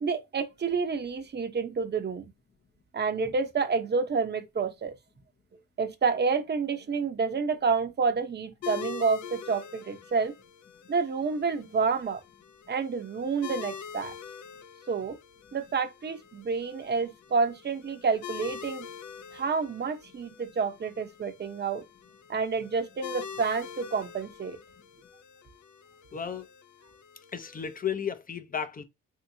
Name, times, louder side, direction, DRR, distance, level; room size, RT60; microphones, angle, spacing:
voice 1, 0.0-2.3 2.9-4.9 5.8-10.3 10.9-12.2 12.7-14.1 14.9-15.2 15.5-18.9 19.3-21.8 22.3-24.6, right 5 dB, 35° right, 0.8 m, -29 dB
sound 1, 8.6-27.8, left 8 dB, 75° left, 0.6 m, -45 dB
voice 2, 26.1-26.5 27.3-28.8, left 7 dB, 30° left, 0.6 m, -33 dB
3.5 x 2.8 x 2.7 m
cardioid pair, 90°, 30 cm